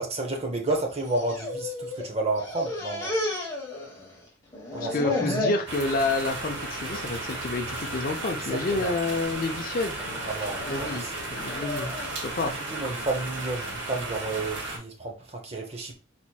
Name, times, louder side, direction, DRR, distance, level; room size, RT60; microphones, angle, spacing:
voice 1, 0.0-3.1 4.7-5.1 8.5-8.9 10.3-11.3 12.7-15.9, right 2 dB, 30° right, 0.7 m, -31 dB
sound 1, 1.0-2.1 2.4-4.2 4.5-5.7 6.2-6.5 6.9-7.0 7.9-8.3 8.8-9.2 10.0-12.2, left 2 dB, 15° left, 1.1 m, -33 dB
voice 2, 4.9-11.9 12.2-12.5, left 3 dB, 45° left, 0.5 m, -29 dB
sound 2, 5.7-14.8, right 2 dB, 70° right, 0.9 m, -34 dB
4.2 x 3.0 x 2.2 m
head